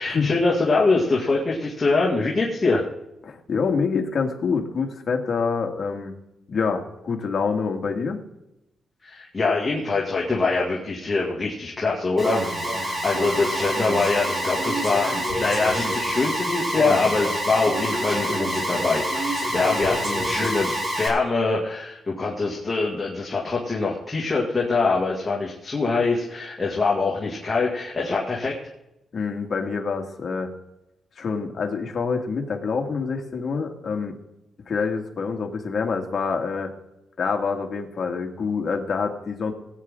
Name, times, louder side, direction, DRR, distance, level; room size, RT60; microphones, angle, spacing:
voice 1, 0.0-2.9 9.0-28.5, left 3 dB, 20° left, -4 dB, 2.3 m, -24 dB
voice 2, 3.3-6.2 6.5-8.2 29.1-30.5 31.2-34.2 34.7-36.7 37.2-39.5, left 5 dB, 45° left, 2 dB, 2.0 m, -26 dB
Alarm, 12.2-21.1, right 1 dB, 30° right, 4.3 m, -26 dB
19.0 x 9.3 x 3.8 m, 0.88 s
wide cardioid pair, 135°, 0 cm